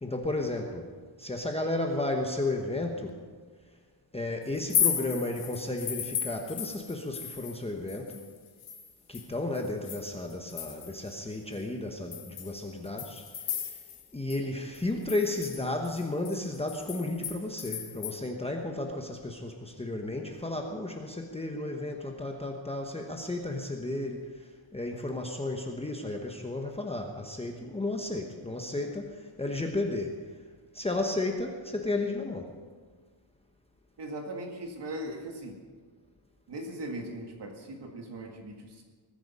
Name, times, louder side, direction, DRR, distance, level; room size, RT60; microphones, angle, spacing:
voice 1, 0.0-0.9 1.2-3.2 4.1-8.2 9.1-13.2 13.5-13.6 14.1-24.3 24.7-29.1 29.4-30.1 30.7-32.5, left 2 dB, 10° left, 2 dB, 1.0 m, -33 dB
sound 1, 4.5-7.6 7.9-11.1 11.5-11.6 12.1-14.1 14.3-14.4 14.7-18.2, left 8 dB, 85° left, 2.0 m, -35 dB
voice 2, 34.0-35.6 36.5-38.8, right 1 dB, 55° right, 1 dB, 2.0 m, -39 dB
20.0 x 10.0 x 5.5 m, 1.5 s
wide cardioid pair, 165°, 48 cm